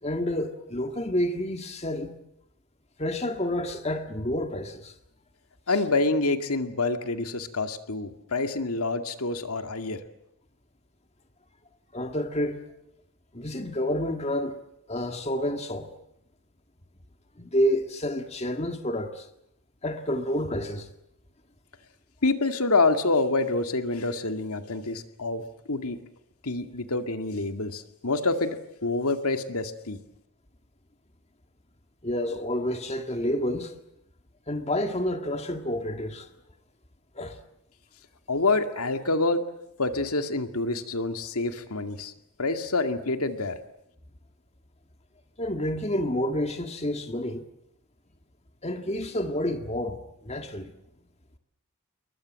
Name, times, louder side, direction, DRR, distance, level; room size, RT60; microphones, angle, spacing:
voice 1, 0.0-2.1 3.0-4.9 11.9-12.6 13.3-14.6 14.9-15.9 17.4-19.3 19.8-20.9 32.0-33.7 34.5-36.3 37.1-37.4 45.4-47.5 48.6-50.7, left 1 dB, 30° left, 1.9 m, -29 dB
voice 2, 5.7-10.0 22.2-25.4 25.7-26.0 26.4-30.0 38.3-39.4 39.8-42.1 42.4-43.6, left 3 dB, 80° left, 2.2 m, -27 dB
29.0 x 23.0 x 7.6 m
head